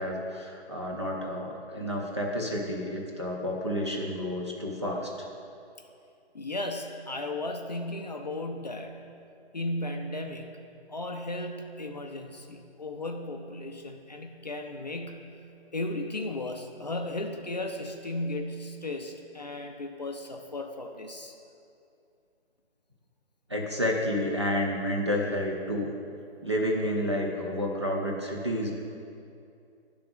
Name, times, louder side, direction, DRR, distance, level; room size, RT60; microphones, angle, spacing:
voice 1, 0.0-5.3 23.5-25.9 26.4-28.7, left 1 dB, 25° right, -2 dB, 0.4 m, -30 dB
voice 2, 6.3-9.0 9.5-10.5 10.9-15.3 15.7-21.3, left 2 dB, 40° left, 3 dB, 0.4 m, -35 dB
10.0 x 3.5 x 5.1 m, 2.6 s
hypercardioid pair, 170°, 33 cm